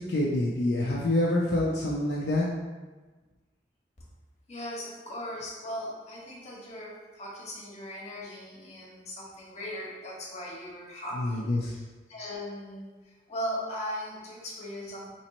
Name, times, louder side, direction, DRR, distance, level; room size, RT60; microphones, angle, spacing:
voice 1, 0.0-2.5 11.1-11.7, left 1 dB, 65° left, -5 dB, 0.5 m, -26 dB
voice 2, 4.5-11.8 12.1-12.9 13.3-15.1, equal, 40° left, -5 dB, 1.0 m, -38 dB
3.0 x 2.9 x 4.1 m, 1.3 s
head